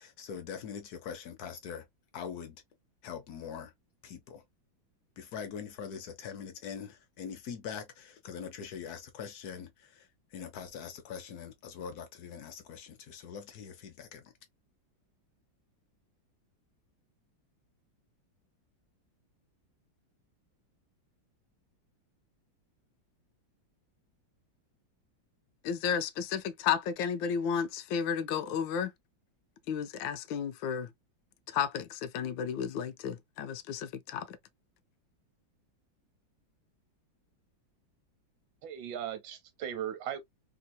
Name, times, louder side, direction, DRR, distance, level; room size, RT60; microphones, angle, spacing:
voice 1, 0.0-1.9 2.1-2.6 3.0-3.7 4.0-4.4 5.2-14.3, left 7 dB, 60° left, 1.1 m, -43 dB
voice 2, 25.6-28.9 29.7-30.9 31.5-34.4, left 7 dB, 80° left, 1.3 m, -32 dB
voice 3, 38.6-40.2, right 10 dB, 80° right, 1.5 m, -37 dB
3.5 x 2.7 x 2.2 m
omnidirectional pair, 2.1 m